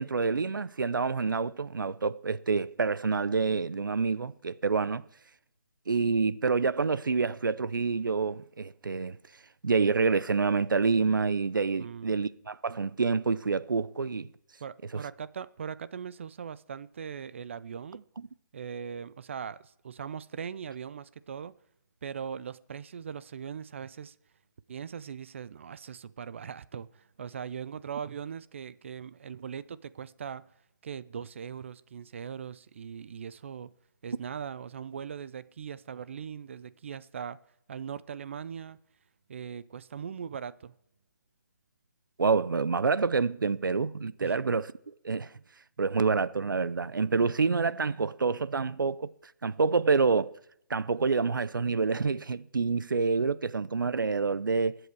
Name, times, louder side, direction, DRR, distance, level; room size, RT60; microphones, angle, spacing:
voice 1, 0.0-5.0 5.9-9.2 9.6-14.3 14.9-15.0 42.2-44.7 45.0-45.3 45.8-49.1 49.4-50.4 50.7-54.8, right 4 dB, 85° right, 0.7 m, -27 dB
voice 2, 11.8-12.1 14.6-18.0 18.5-21.5 22.0-24.1 24.7-30.4 30.8-33.7 34.0-37.4 37.7-38.8 39.3-40.7 44.2-44.4, right 7 dB, 40° right, 0.5 m, -40 dB
21.0 x 7.8 x 4.7 m
hypercardioid pair, 160°, 11 cm